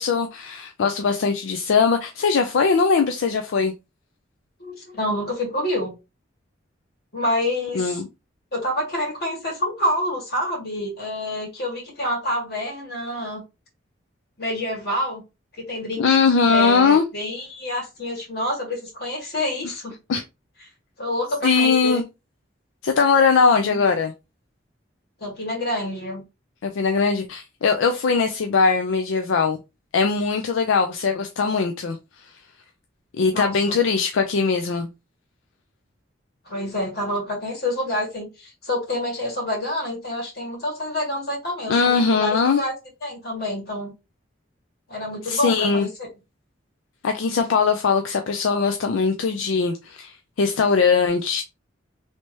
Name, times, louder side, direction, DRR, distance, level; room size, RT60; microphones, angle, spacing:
voice 1, 0.0-3.7 7.7-8.1 16.0-17.0 19.6-19.7 20.1-20.2 21.4-22.0 22.8-24.1 26.6-29.6 29.9-32.0 33.2-34.9 41.7-42.6 45.2-45.9 47.0-51.4, left 5 dB, 80° left, 0.4 m, -20 dB
voice 2, 4.6-5.9 7.1-8.0 8.5-13.4 14.4-15.2 15.6-16.0 16.5-20.0 21.0-22.0 23.6-23.9 25.2-26.2 33.3-33.7 36.5-42.7 43.0-43.9 44.9-45.9, left 1 dB, 55° left, 1.9 m, -27 dB
3.2 x 2.8 x 3.0 m
head